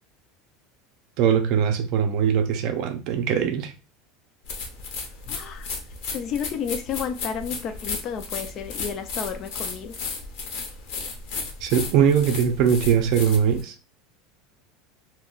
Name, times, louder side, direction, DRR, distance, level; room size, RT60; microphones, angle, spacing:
voice 1, 1.2-3.7 11.6-13.7, right 8 dB, 50° right, 0.4 m, -21 dB
sound 1, 4.4-13.6, left 4 dB, 55° left, 0.7 m, -34 dB
voice 2, 5.3-5.7 6.0-10.0, left 7 dB, 40° left, 0.3 m, -32 dB
2.3 x 2.1 x 3.7 m
supercardioid pair, 155°, 0 cm